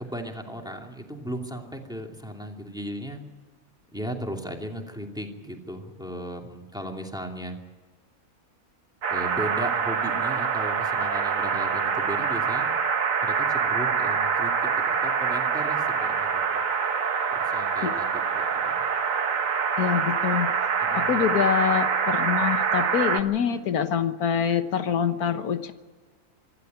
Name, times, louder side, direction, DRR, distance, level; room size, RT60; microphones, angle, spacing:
voice 1, 0.0-3.2 3.9-7.6 9.1-12.7 13.2-16.6 17.3-18.9 20.8-21.3, equal, 5° right, 2 dB, 2.6 m, -36 dB
sound 1, 9.0-23.2, right 6 dB, 65° right, 1.5 m, -25 dB
voice 2, 19.8-20.7 20.9-25.7, left 8 dB, 85° left, 9 dB, 1.6 m, -25 dB
25.5 x 12.5 x 9.4 m, 1.4 s
omnidirectional pair, 1.5 m